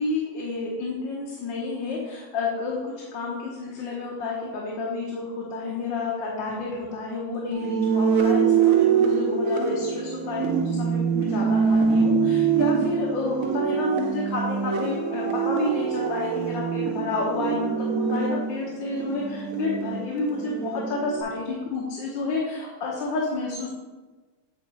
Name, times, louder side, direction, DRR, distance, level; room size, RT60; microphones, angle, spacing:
voice 1, 0.0-23.7, left 3 dB, 80° left, -4 dB, 1.7 m, -30 dB
sound 1, 7.5-21.2, right 6 dB, 60° right, 0.9 m, -24 dB
8.7 x 3.5 x 4.2 m, 1.3 s
omnidirectional pair, 2.1 m